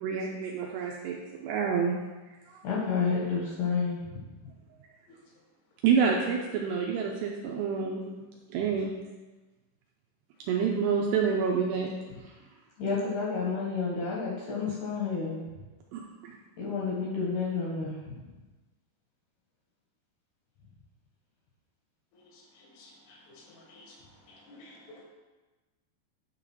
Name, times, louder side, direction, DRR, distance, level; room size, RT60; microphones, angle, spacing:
voice 1, 0.0-2.0 2.5-2.6 5.8-8.0 8.5-8.9 10.5-11.9 12.2-12.3 15.9-16.3, right 6 dB, 85° right, -1 dB, 2.5 m, -28 dB
voice 2, 2.6-4.2 12.8-15.4 16.6-18.1, left 5 dB, 70° left, -4 dB, 1.9 m, -30 dB
voice 3, 22.1-24.0 24.3-25.1, left 2 dB, 90° left, -1 dB, 4.4 m, -53 dB
9.8 x 4.0 x 6.0 m, 1.2 s
omnidirectional pair, 5.5 m